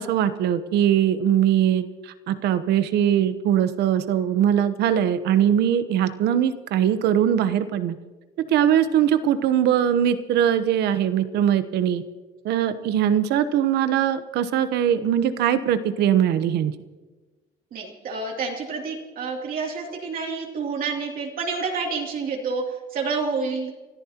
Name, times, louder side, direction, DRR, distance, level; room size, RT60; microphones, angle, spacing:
voice 1, 0.0-8.0 8.4-12.0 12.4-16.7, right 10 dB, 75° right, 12 dB, 1.0 m, -21 dB
voice 2, 17.7-22.6 22.9-23.7, right 4 dB, 55° right, -1 dB, 2.9 m, -28 dB
30.0 x 13.5 x 2.9 m, 1.3 s
cardioid pair, 110°, 17 cm